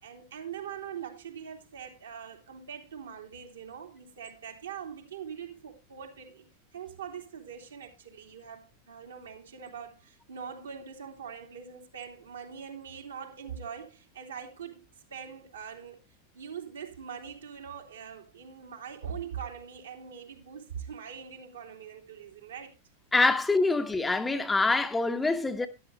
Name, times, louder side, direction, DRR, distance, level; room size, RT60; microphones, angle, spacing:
voice 1, 0.0-6.5 6.7-16.0 16.3-22.7, right 7 dB, 70° right, 2.9 m, -42 dB
voice 2, 23.1-25.7, left 3 dB, 10° left, 1.1 m, -25 dB
13.0 x 11.0 x 3.2 m
figure-of-eight pair, 90°, 0 cm